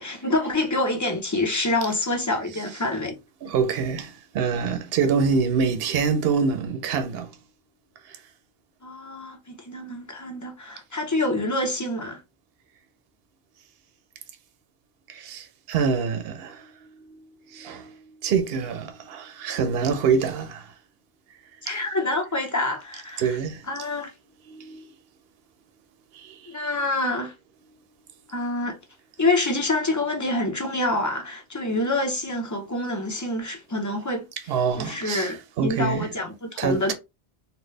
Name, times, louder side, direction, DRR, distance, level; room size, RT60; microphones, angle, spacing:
voice 1, 0.0-3.2 8.8-12.2 21.6-23.4 23.7-24.1 26.5-27.3 28.3-28.8 29.2-34.3 34.8-36.9, left 2 dB, 20° left, 0.8 m, -26 dB
voice 2, 3.4-7.3 8.1-8.2 15.1-20.7 21.7-21.8 23.2-23.6 24.5-24.9 26.1-26.6 34.5-36.1 36.6-36.9, right 5 dB, 70° right, 0.9 m, -26 dB
4.0 x 2.2 x 3.2 m
omnidirectional pair, 1.1 m